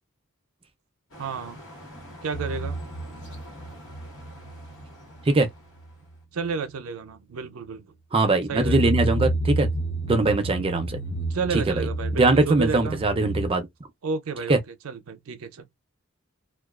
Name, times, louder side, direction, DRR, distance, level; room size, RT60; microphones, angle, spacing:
sound 1, 1.1-6.2, equal, 65° left, 1.2 m, -46 dB
voice 1, 1.2-1.6 2.2-2.8 6.3-7.9 8.5-8.9 11.3-13.0 14.0-15.7, right 5 dB, 85° right, 0.5 m, -31 dB
sound 2, 2.3-4.9 5.2-5.5 5.8-5.9 8.4-13.5, right 1 dB, 35° left, 0.3 m, -30 dB
voice 2, 8.1-9.7 10.0-11.0 11.5-11.9 12.1-13.7 14.5-14.6, right 2 dB, 25° right, 0.5 m, -21 dB
2.3 x 2.3 x 2.3 m
head